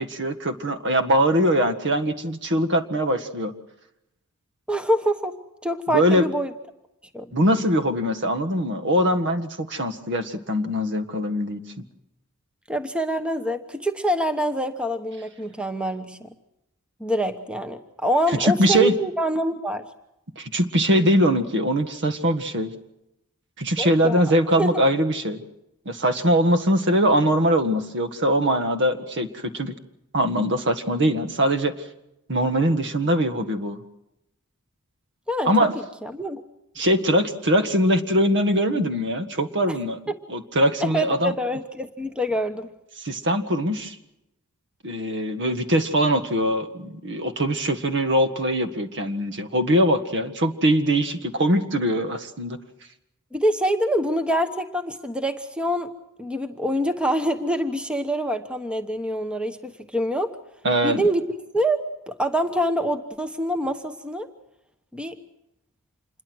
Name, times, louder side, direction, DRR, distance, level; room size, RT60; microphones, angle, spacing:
voice 1, 0.0-3.5 5.9-6.2 7.3-11.6 18.4-19.0 20.4-22.7 23.6-25.4 25.9-29.7 30.1-31.7 32.3-33.8 35.5-35.7 36.8-40.0 40.3-41.3 43.0-44.0 44.8-52.6 60.6-61.0, equal, 55° right, 9 dB, 1.7 m, -22 dB
voice 2, 4.7-5.3 5.6-6.5 7.1-7.3 12.7-16.3 17.0-19.8 23.8-24.2 24.6-24.8 35.3-36.4 39.7-39.8 40.1-40.2 40.8-42.7 53.3-55.9 56.2-60.4 60.8-61.2 61.5-64.3 64.9-65.1, equal, 5° right, 8 dB, 1.0 m, -25 dB
27.0 x 21.5 x 6.3 m, 0.87 s
head